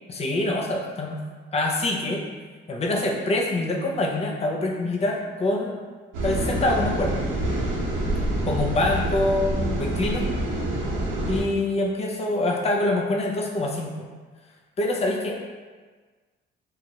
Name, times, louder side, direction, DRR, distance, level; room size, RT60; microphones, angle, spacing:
voice 1, 0.1-1.2 1.5-2.3 2.7-5.8 6.2-7.1 8.5-10.2 11.3-14.0 14.8-15.4, left 2 dB, 30° left, 0 dB, 0.5 m, -25 dB
sound 1, 6.1-11.4, right 1 dB, 90° right, 0.7 m, -26 dB
3.0 x 2.4 x 2.8 m, 1.4 s
cardioid pair, 90°, 20 cm